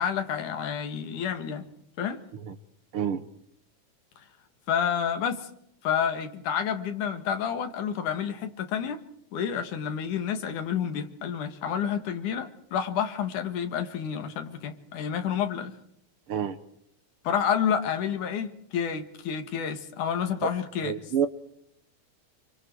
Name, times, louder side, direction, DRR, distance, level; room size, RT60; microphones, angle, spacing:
voice 1, 0.0-1.7 2.0-2.2 4.2-4.3 4.7-5.5 5.8-9.0 9.3-15.7 17.2-20.9, left 8 dB, 85° left, 3.2 m, -29 dB
voice 2, 2.9-3.2 16.3-16.6 20.4-20.5 20.8-21.3, right 8 dB, 60° right, 1.6 m, -28 dB
27.5 x 25.0 x 4.6 m
omnidirectional pair, 3.4 m